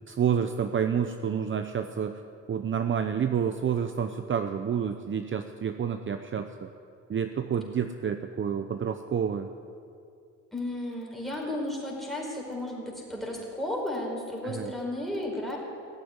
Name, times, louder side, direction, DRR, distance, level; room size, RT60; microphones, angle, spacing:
voice 1, 0.1-2.2 2.5-6.7 7.1-9.5 14.4-14.7, right 7 dB, 40° right, 8 dB, 0.8 m, -29 dB
voice 2, 10.5-15.6, left 1 dB, ahead, -2 dB, 4.9 m, -33 dB
17.5 x 8.4 x 9.8 m, 2.4 s
cardioid pair, 90°, 30 cm